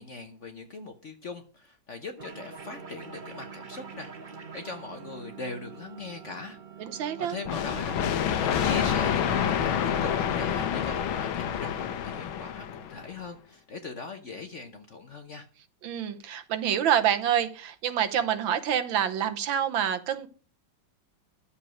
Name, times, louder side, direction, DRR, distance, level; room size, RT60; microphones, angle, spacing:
voice 1, 0.0-4.1 4.4-6.6 7.2-8.0 8.3-9.7 10.0-15.5, left 3 dB, 50° left, 7 dB, 0.9 m, -41 dB
sound 1, 2.2-11.1, right 6 dB, 35° right, 0.8 m, -45 dB
voice 2, 6.8-7.4 15.8-20.3, right 9 dB, 75° right, 10 dB, 1.6 m, -27 dB
sound 2, 7.5-13.0, left 8 dB, 75° left, 1.7 m, -28 dB
11.5 x 7.1 x 6.2 m, 0.39 s
omnidirectional pair, 2.2 m